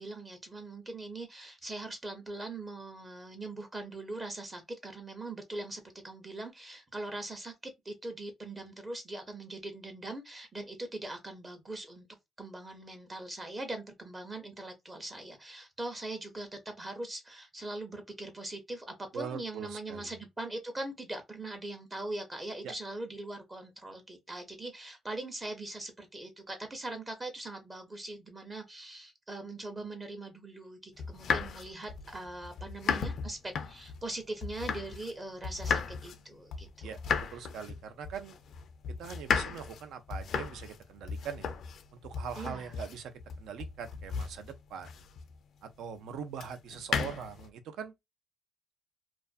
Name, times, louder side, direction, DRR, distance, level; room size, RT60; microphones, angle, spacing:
voice 1, 0.0-12.1 12.4-37.0 42.4-42.7, right 2 dB, 25° right, 0.6 m, -41 dB
voice 2, 19.1-20.1 22.6-22.7 36.8-37.0 37.3-38.4 39.0-41.5 41.9-45.0 45.6-47.9, right 7 dB, 80° right, 0.4 m, -42 dB
sound 1, 31.0-35.2 35.4-45.4 46.4-47.5, left 6 dB, 70° left, 0.4 m, -35 dB
2.4 x 2.2 x 2.3 m
cardioid pair, 90°, 0 cm